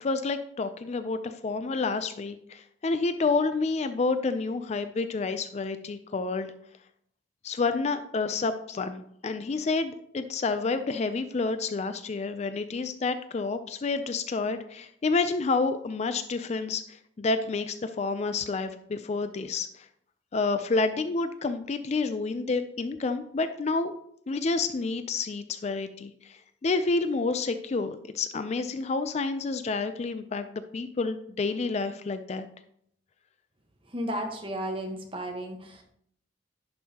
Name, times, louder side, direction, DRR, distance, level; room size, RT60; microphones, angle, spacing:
voice 1, 0.0-6.5 7.4-19.9 20.3-23.9 24.3-32.5, left 3 dB, 35° left, 10 dB, 0.4 m, -29 dB
voice 2, 33.9-35.8, equal, 30° right, 3 dB, 1.2 m, -33 dB
10.5 x 5.5 x 2.8 m, 0.69 s
head